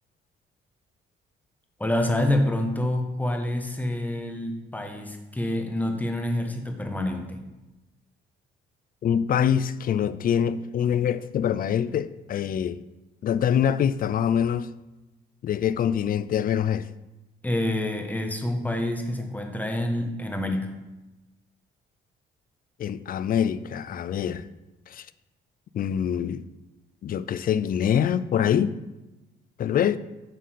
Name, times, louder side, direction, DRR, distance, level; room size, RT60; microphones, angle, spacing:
voice 1, 1.8-7.4 17.4-20.7, left 1 dB, 10° left, 1.2 m, -27 dB
voice 2, 9.0-12.8 13.2-14.7 15.4-16.9 22.8-24.5 24.9-25.1 25.7-26.5 27.0-28.8 29.6-30.0, left 9 dB, 45° left, 0.4 m, -24 dB
7.5 x 4.1 x 6.6 m
cardioid pair, 90°, 20 cm